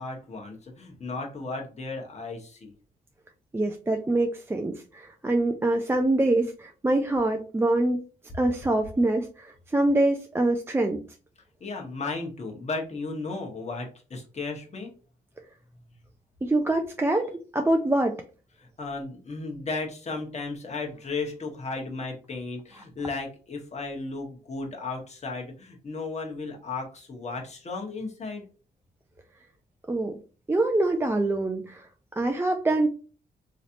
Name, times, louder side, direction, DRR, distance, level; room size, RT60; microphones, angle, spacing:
voice 1, 0.0-2.7 11.6-14.9 18.6-28.4, left 3 dB, 40° left, 0 dB, 1.2 m, -35 dB
voice 2, 3.5-8.0 8.3-11.0 16.4-18.2 29.9-30.2 30.5-31.9 32.2-32.9, right 2 dB, 15° right, 4 dB, 0.4 m, -25 dB
3.1 x 2.8 x 2.6 m, 0.37 s
cardioid pair, 70°, 17 cm